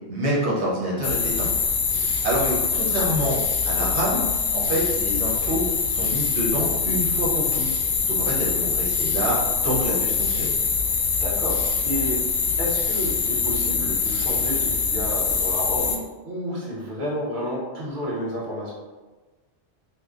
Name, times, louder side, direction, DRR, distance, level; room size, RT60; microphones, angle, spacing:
voice 1, 0.1-1.5 1.9-7.7 8.0-10.5, right 1 dB, 75° right, -5 dB, 1.2 m, -27 dB
sound 1, 1.0-16.0, left 5 dB, 65° left, 0.7 m, -24 dB
voice 2, 11.2-11.6 11.8-12.2 12.6-18.7, equal, 50° right, -5 dB, 1.0 m, -31 dB
2.9 x 2.2 x 3.6 m, 1.3 s
omnidirectional pair, 1.1 m